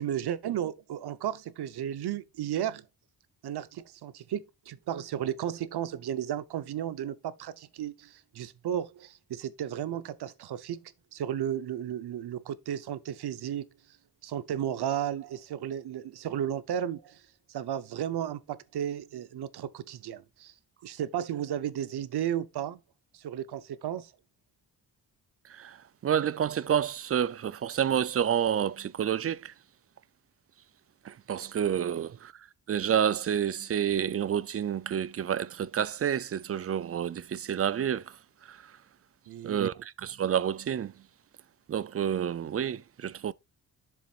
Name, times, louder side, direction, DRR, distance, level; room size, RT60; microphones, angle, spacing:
voice 1, 0.0-2.9 3.4-13.7 14.2-17.2 17.5-20.5 20.8-22.8 23.1-24.1 32.0-32.1 39.3-39.6, right 10 dB, 85° right, 0.8 m, -34 dB
voice 2, 26.0-29.5 31.1-32.3 32.7-38.0 39.4-40.9 41.7-43.3, right 9 dB, 40° right, 0.4 m, -29 dB
10.5 x 7.2 x 2.4 m
wide cardioid pair, 120°, 38 cm